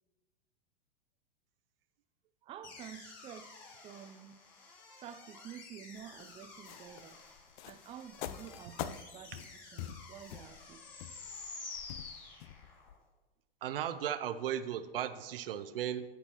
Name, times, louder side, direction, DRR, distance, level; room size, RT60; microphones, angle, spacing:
voice 1, 2.4-4.4 4.9-7.2 7.6-10.8, right 9 dB, 20° right, 8 dB, 0.4 m, -50 dB
sound 1, 2.6-12.9, left 4 dB, 35° left, 3.1 m, -51 dB
sound 2, 6.0-13.0, left 11 dB, 50° left, 0.6 m, -45 dB
voice 2, 13.6-16.0, right 10 dB, 65° right, 12 dB, 0.7 m, -36 dB
14.5 x 6.8 x 3.0 m, 1.2 s
figure-of-eight pair, 95°, 30 cm